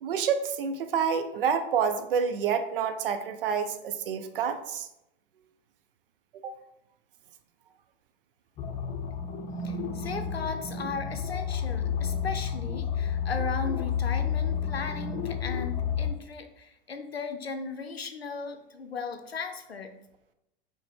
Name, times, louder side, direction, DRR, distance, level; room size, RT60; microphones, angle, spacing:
voice 1, 0.0-4.9 6.4-6.6, right 7 dB, 65° right, 9 dB, 0.5 m, -28 dB
sound 1, 8.6-16.1, left 7 dB, 25° left, 0.6 m, -31 dB
voice 2, 9.6-19.9, left 4 dB, 90° left, 6 dB, 0.5 m, -37 dB
5.7 x 2.1 x 3.2 m, 0.86 s
figure-of-eight pair, 90°, 30 cm